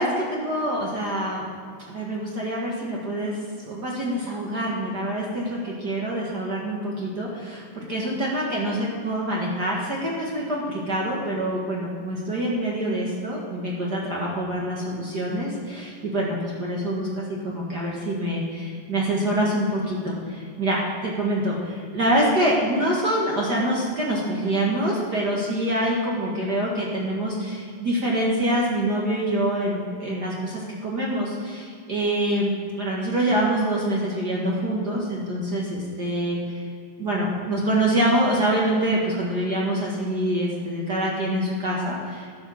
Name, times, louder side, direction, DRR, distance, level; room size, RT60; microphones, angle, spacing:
voice 1, 0.0-1.4 1.9-36.7 37.0-42.3, right 1 dB, 45° right, -3 dB, 1.4 m, -25 dB
11.0 x 8.7 x 6.3 m, 2.2 s
omnidirectional pair, 3.9 m